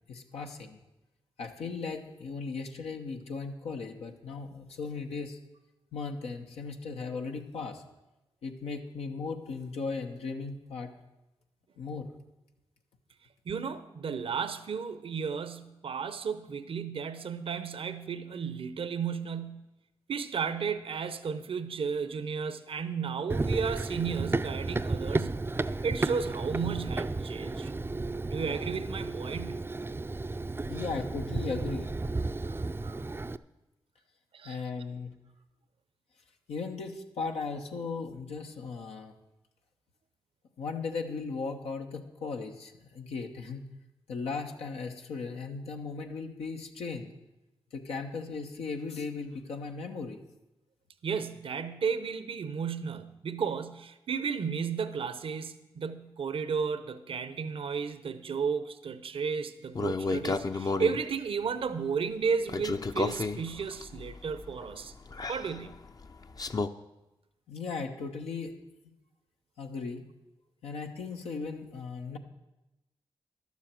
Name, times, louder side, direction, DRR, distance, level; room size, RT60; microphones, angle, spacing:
voice 1, 0.1-0.8 1.4-5.4 5.9-7.8 8.4-10.9 11.8-12.1 30.6-31.9 34.4-35.1 36.5-39.1 40.6-43.7 44.1-47.1 47.7-50.2 67.5-68.5 69.6-70.0 70.6-72.2, left 4 dB, 85° left, 3 dB, 1.0 m, -37 dB
voice 2, 13.4-19.7 20.1-25.4 25.8-27.7 28.3-29.7 32.4-33.1 34.3-34.6 51.0-64.9 65.3-65.8, right 6 dB, 65° right, 12 dB, 0.7 m, -33 dB
Run, 23.3-33.4, right 3 dB, 25° right, 0.5 m, -33 dB
sound 1, 59.7-61.0 62.5-66.7, left 3 dB, 40° left, 0.6 m, -33 dB
11.5 x 7.4 x 7.5 m, 0.98 s
supercardioid pair, 45°, 10 cm